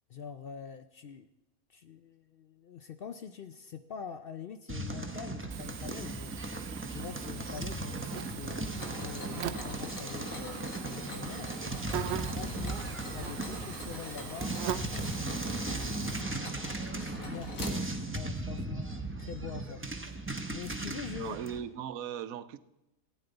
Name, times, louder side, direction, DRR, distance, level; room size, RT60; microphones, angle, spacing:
voice 1, 0.1-1.3 1.7-6.3 6.8-8.7 9.0-11.5 12.1-14.5 15.2-16.1 16.7-19.8 20.5-21.4, left 7 dB, 60° left, 9 dB, 0.6 m, -44 dB
sound 1, 4.7-21.6, right 2 dB, 15° right, 0.6 m, -37 dB
Buzz, 5.5-16.2, right 11 dB, 65° right, 0.7 m, -42 dB
Mechanisms, 8.7-18.3, left 2 dB, 80° left, 2.1 m, -45 dB
voice 2, 21.1-22.6, right 9 dB, 90° right, 14 dB, 1.1 m, -38 dB
15.0 x 9.3 x 3.9 m, 0.95 s
omnidirectional pair, 1.4 m